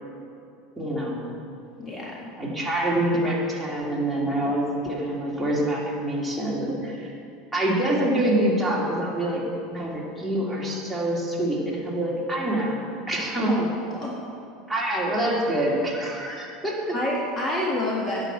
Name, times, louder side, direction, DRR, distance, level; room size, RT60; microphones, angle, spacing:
voice 1, 0.8-1.2 2.4-7.1 7.5-9.4 9.7-13.7 14.7-16.9, right 1 dB, 5° right, -5 dB, 2.6 m, -26 dB
voice 2, 1.8-2.2 13.5-13.6 13.9-14.2 16.9-18.2, left 1 dB, 25° left, -3 dB, 1.6 m, -28 dB
8.8 x 6.2 x 7.6 m, 2.5 s
hypercardioid pair, 95°, 0 cm